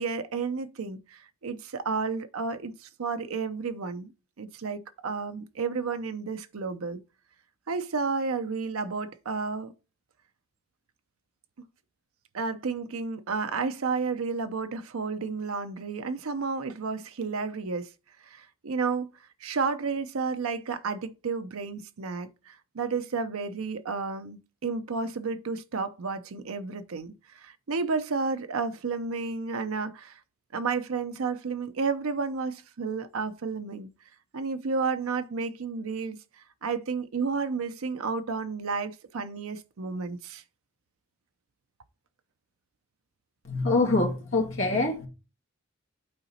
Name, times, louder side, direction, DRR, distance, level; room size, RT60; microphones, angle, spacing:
voice 1, 0.0-4.1 4.4-7.0 7.7-9.7 12.3-17.9 18.2-19.1 19.4-30.2 30.5-33.9 34.3-36.2 36.6-40.4, right 4 dB, 80° right, 0.6 m, -31 dB
voice 2, 43.4-45.1, left 2 dB, 65° left, 1.8 m, -25 dB
8.7 x 3.9 x 4.1 m
head